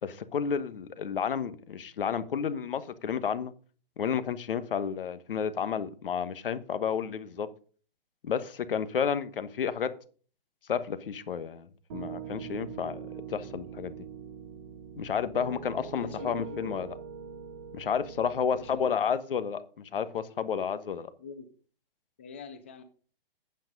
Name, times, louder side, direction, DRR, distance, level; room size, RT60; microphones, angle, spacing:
voice 1, 0.0-3.5 4.0-7.5 8.2-9.9 10.7-13.0 13.3-13.9 15.0-16.9 17.7-21.1, left 7 dB, 70° left, 1.2 m, -31 dB
Piano, 11.9-18.8, right 8 dB, 20° right, 0.8 m, -43 dB
voice 2, 15.8-16.7 18.5-18.9 21.2-21.5 22.2-22.8, left 5 dB, 15° left, 0.5 m, -44 dB
8.9 x 7.9 x 5.2 m
hypercardioid pair, 175°, 29 cm